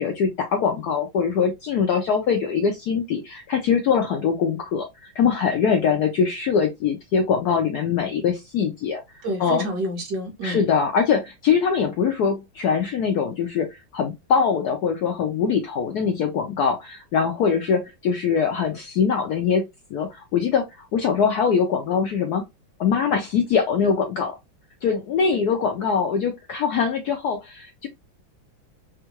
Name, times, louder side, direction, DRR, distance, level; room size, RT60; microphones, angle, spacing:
voice 1, 0.0-9.0 9.4-9.6 10.4-19.7 19.9-22.4 22.8-24.3 24.8-27.9, left 6 dB, 75° left, 0.9 m, -22 dB
voice 2, 9.2-10.6, equal, 65° right, 1.4 m, -28 dB
3.6 x 2.3 x 2.8 m
omnidirectional pair, 2.2 m